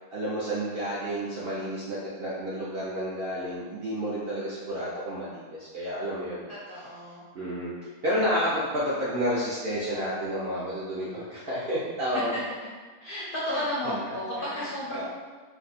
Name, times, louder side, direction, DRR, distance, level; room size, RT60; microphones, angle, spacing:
voice 1, 0.1-6.4 7.3-7.7 8.0-12.4 13.5-13.6 14.4-15.1, equal, 60° right, -7 dB, 0.6 m, -30 dB
voice 2, 6.5-7.2 8.4-8.5 12.1-12.2 13.0-15.1, left 1 dB, 60° left, -8 dB, 0.6 m, -33 dB
2.6 x 2.3 x 4.0 m, 1.5 s
omnidirectional pair, 1.5 m